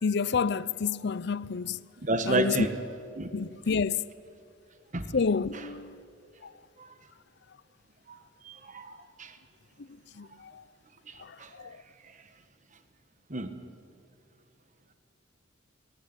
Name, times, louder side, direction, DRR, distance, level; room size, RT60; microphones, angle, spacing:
voice 1, 0.0-1.8 2.3-2.7 3.3-4.0 5.1-6.0 10.2-10.6 11.2-11.8, left 5 dB, 60° left, 0.6 m, -29 dB
voice 2, 2.0-2.7 3.1-3.3 4.9-5.1 5.5-5.7 6.8-6.9 8.1-8.2 8.4-9.4 11.1-11.8 12.0-12.3 13.3-13.5, right 2 dB, 40° right, 1.5 m, -32 dB
28.5 x 20.0 x 9.9 m
head